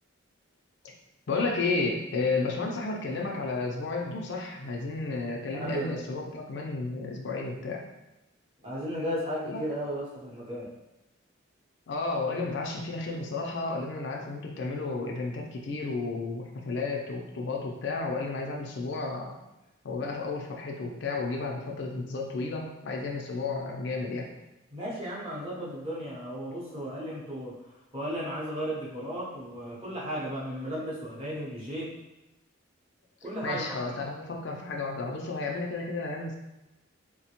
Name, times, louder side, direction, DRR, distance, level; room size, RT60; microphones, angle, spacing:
voice 1, 1.3-7.8 9.4-9.6 11.9-19.3 19.8-24.3 33.4-36.4, left 3 dB, 55° left, 0 dB, 0.4 m, -32 dB
voice 2, 5.5-6.1 8.6-10.7 24.7-27.6 27.9-31.9 33.2-33.9, equal, 30° right, -7 dB, 0.8 m, -35 dB
3.1 x 2.1 x 2.9 m, 0.96 s
head